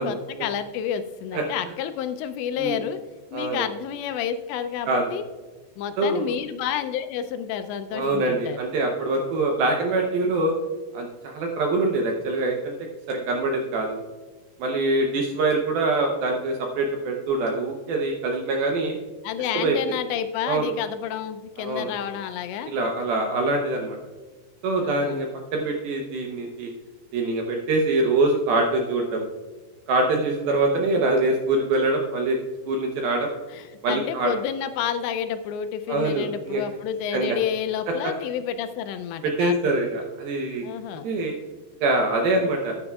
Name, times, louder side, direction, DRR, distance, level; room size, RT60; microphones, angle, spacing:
voice 1, 0.1-3.0 3.3-5.2 5.8-8.6 19.2-22.7 24.8-25.2 33.5-39.8 40.6-41.1, left 9 dB, 85° left, 9 dB, 2.6 m, -30 dB
voice 2, 3.3-3.7 4.9-5.0 6.0-6.3 7.9-10.5 10.9-12.7 13.1-14.0 14.6-19.0 19.5-19.8 20.5-20.8 21.6-22.1 22.7-24.0 24.6-26.7 27.1-29.3 29.9-32.4 32.7-33.3 33.8-34.3 35.9-36.6 37.1-37.4 39.2-40.7 41.0-41.3 41.8-42.7, right 2 dB, 75° right, 1 dB, 2.2 m, -24 dB
13.5 x 9.7 x 2.3 m, 1.3 s
omnidirectional pair, 5.2 m